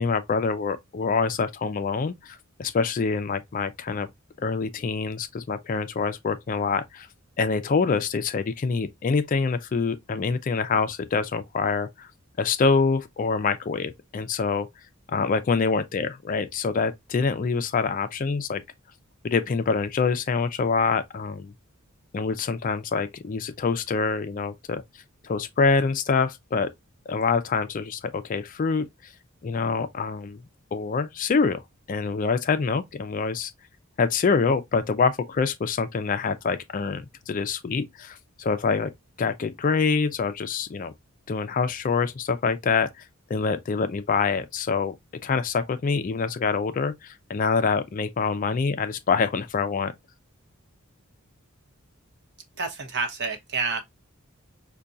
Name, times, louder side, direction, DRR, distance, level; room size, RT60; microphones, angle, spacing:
voice 1, 0.0-4.1 4.4-7.1 7.4-12.1 12.4-14.7 15.1-18.6 19.2-21.5 22.1-24.8 25.2-26.7 27.1-28.9 29.4-30.4 30.7-31.6 31.9-33.5 34.0-38.9 39.2-40.9 41.3-43.0 43.3-44.9 45.2-49.9, left 5 dB, 40° left, 0.4 m, -25 dB
voice 2, 52.6-53.8, right 4 dB, 55° right, 0.9 m, -28 dB
5.6 x 2.2 x 2.5 m
head